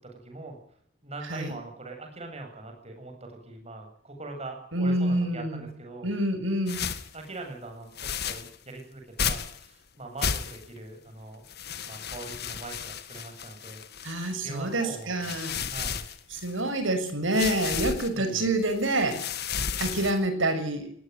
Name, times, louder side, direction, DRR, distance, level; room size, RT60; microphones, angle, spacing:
voice 1, 0.0-0.6 1.0-6.1 7.1-11.4 11.8-13.8 14.4-15.3 15.6-16.0 18.1-18.5, right 2 dB, 30° right, 3 dB, 7.9 m, -42 dB
voice 2, 4.7-5.7 6.0-6.8 14.0-15.6 16.3-19.2 19.8-20.9, right 1 dB, 70° right, 8 dB, 6.5 m, -27 dB
sound 1, 6.7-7.1 7.9-8.5 9.2-9.6 10.2-10.8 11.5-14.5 15.0-16.7 17.3-18.1 18.6-20.3, left 7 dB, 55° left, 1.9 m, -33 dB
19.0 x 18.5 x 9.5 m, 0.62 s
head